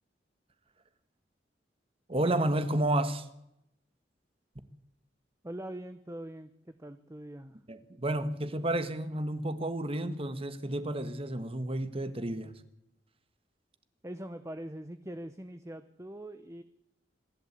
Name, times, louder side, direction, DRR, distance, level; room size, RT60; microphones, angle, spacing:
voice 1, 2.1-3.3 7.7-12.5, right 1 dB, 35° right, 1.5 m, -31 dB
voice 2, 5.4-7.6 14.0-16.6, right 1 dB, 15° right, 0.9 m, -42 dB
27.0 x 11.5 x 8.3 m
head